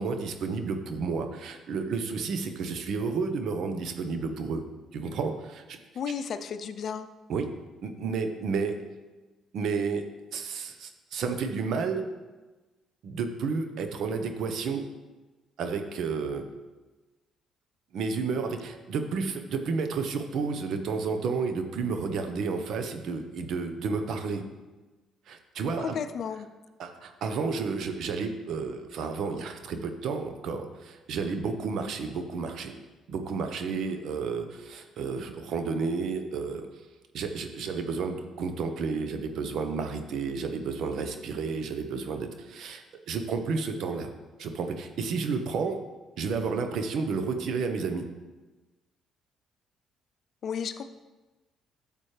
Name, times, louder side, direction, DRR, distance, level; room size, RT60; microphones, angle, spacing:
voice 1, 0.0-4.6 4.9-5.8 7.3-7.5 7.8-8.8 9.5-12.0 13.0-14.8 15.6-16.4 17.9-24.4 25.3-25.9 26.8-32.7 33.1-36.7 37.1-44.1 44.4-45.8 46.2-48.1, right 4 dB, 70° right, 6 dB, 1.0 m, -31 dB
voice 2, 5.9-7.1 25.8-26.5 50.4-50.8, left 7 dB, 60° left, 11 dB, 0.6 m, -33 dB
12.0 x 7.3 x 3.4 m, 1.2 s
supercardioid pair, 80°, 0 cm